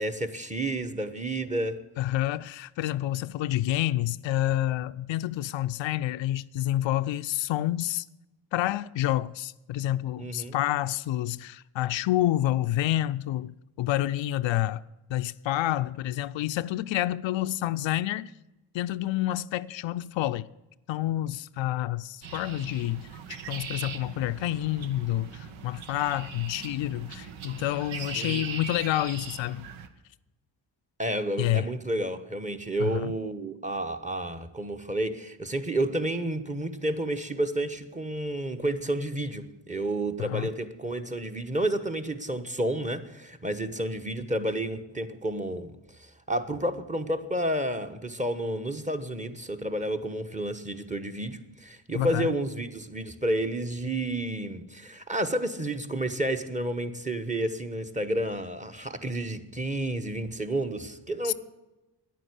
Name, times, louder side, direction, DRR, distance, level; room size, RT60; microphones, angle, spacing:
voice 1, 0.0-1.8 10.2-10.5 28.2-28.4 31.0-45.7 46.0-61.3, right 1 dB, 15° right, 1.2 m, -30 dB
voice 2, 2.0-8.1 8.5-14.8 15.1-18.3 18.7-20.5 20.9-29.7 31.4-31.7 32.8-33.1 40.2-40.5 51.9-52.3 61.2-61.3, left 14 dB, 75° left, 0.5 m, -28 dB
sound 1, 22.2-29.9, right 7 dB, 90° right, 1.1 m, -40 dB
10.5 x 9.2 x 8.3 m
cardioid pair, 70°, 46 cm